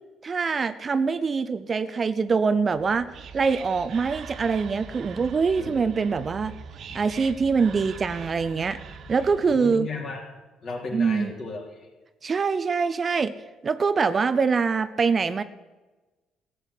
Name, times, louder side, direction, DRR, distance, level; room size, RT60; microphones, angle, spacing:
voice 1, 0.2-6.5 6.9-8.8 9.1-9.9 10.9-11.3 12.2-13.3 13.6-15.4, right 5 dB, 35° right, 12 dB, 0.6 m, -24 dB
Whispering, 2.7-9.6, right 6 dB, 55° right, 1.0 m, -42 dB
voice 2, 9.5-10.3 10.6-11.9, left 3 dB, 45° left, 1 dB, 3.5 m, -35 dB
15.0 x 7.8 x 8.2 m, 1.2 s
cardioid pair, 105°, 0 cm